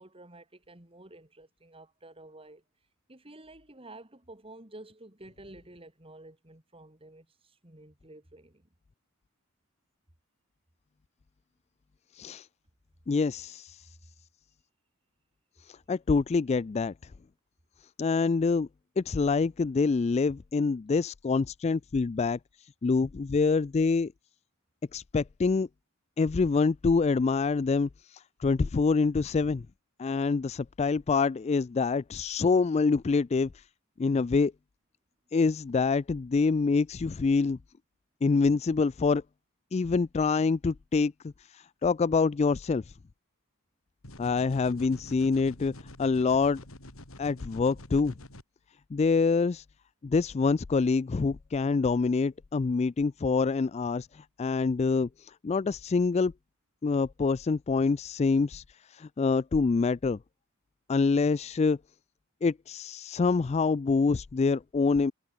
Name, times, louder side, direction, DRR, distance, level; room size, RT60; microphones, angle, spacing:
voice 1, 0.0-2.6 3.1-8.7, right 2 dB, 25° right, 3.1 m, -51 dB
voice 2, 12.1-12.5 13.1-13.9 15.7-16.9 18.0-18.7 19.0-22.4 22.8-24.1 24.9-25.7 26.2-29.6 30.0-33.6 34.0-34.5 35.3-37.6 38.2-39.2 39.7-42.9 44.2-45.7 46.0-46.6 47.2-48.1 48.9-49.6 50.0-56.3 56.8-58.6 58.9-60.2 60.9-61.8 62.4-65.1, left 4 dB, 30° left, 0.3 m, -26 dB
sound 1, 44.0-48.4, left 1 dB, 70° left, 5.3 m, -47 dB
head